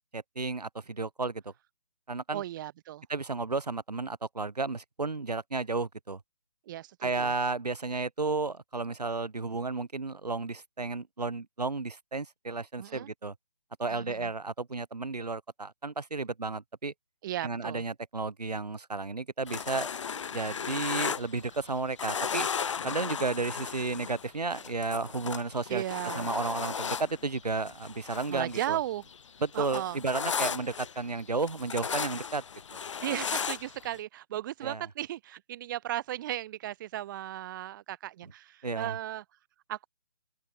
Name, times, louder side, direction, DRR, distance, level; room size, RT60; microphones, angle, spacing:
voice 1, 0.4-1.5 2.1-2.4 3.1-6.2 7.0-13.3 13.8-16.9 17.4-19.9 20.3-22.5 22.8-25.8 26.2-28.8 29.4-32.4 32.7-32.8 34.6-34.8 38.6-38.9, right 3 dB, 80° right, 2.5 m, -33 dB
voice 2, 2.3-3.0 6.6-7.3 12.8-13.1 13.9-14.3 17.2-17.8 25.7-26.3 28.3-29.1 29.5-30.0 33.0-39.2 39.7-39.9, right 13 dB, 30° right, 5.1 m, -36 dB
sound 1, 19.5-21.7 22.0-28.8 29.1-34.0, left 7 dB, 50° left, 5.8 m, -35 dB
open air
figure-of-eight pair, 150°, 20 cm